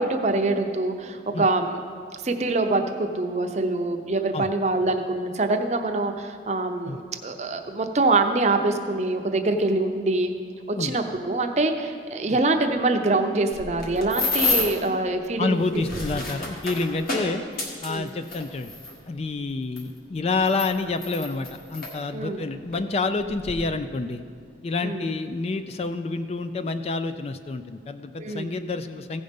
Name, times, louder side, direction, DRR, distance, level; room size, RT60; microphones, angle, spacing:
voice 1, 0.0-1.8 2.2-10.3 10.7-15.6 17.9-18.1 22.1-22.4 24.8-25.0 28.2-28.5, right 2 dB, 40° right, 6 dB, 0.6 m, -24 dB
sound 1, 13.5-14.9 15.6-18.9 19.8-19.9 20.5-21.9 22.7-22.9 23.2-23.5, left 3 dB, 50° left, 1.5 m, -29 dB
voice 2, 15.4-17.4 17.8-18.8 19.1-24.2 24.6-29.2, left 3 dB, 35° left, 9 dB, 0.3 m, -28 dB
15.5 x 5.3 x 5.2 m, 2.2 s
head